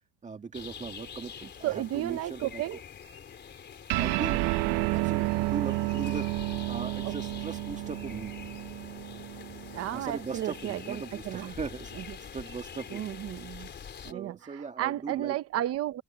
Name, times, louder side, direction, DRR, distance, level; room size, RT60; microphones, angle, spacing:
voice 1, 0.2-2.6 4.0-4.6 4.9-8.3 9.9-11.9 12.2-13.1 14.0-15.4, right 5 dB, 15° right, 2.0 m, -39 dB
sound 1, 0.5-14.1, left 7 dB, 25° left, 3.9 m, -45 dB
voice 2, 1.6-2.8 7.0-7.1 9.7-11.5 12.0-12.2 12.9-13.7 14.0-16.0, right 13 dB, 30° right, 0.8 m, -33 dB
sound 2, 3.9-10.7, right 20 dB, 60° right, 0.9 m, -31 dB
cardioid pair, 175°, 45 cm